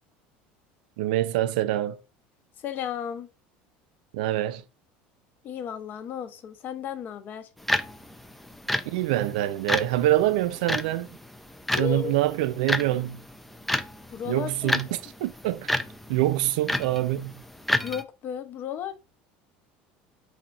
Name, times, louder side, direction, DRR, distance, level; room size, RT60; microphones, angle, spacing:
voice 1, 1.0-2.0 4.1-4.6 8.9-11.1 11.7-13.2 14.3-15.7 16.1-17.3, right 14 dB, 85° right, 0.4 m, -25 dB
voice 2, 2.6-3.3 5.4-7.5 11.7-12.2 14.1-14.7 17.8-18.9, left 8 dB, 45° left, 0.7 m, -34 dB
sound 1, 7.6-18.0, left 1 dB, 5° left, 0.4 m, -31 dB
4.3 x 2.3 x 3.7 m
supercardioid pair, 115°, 5 cm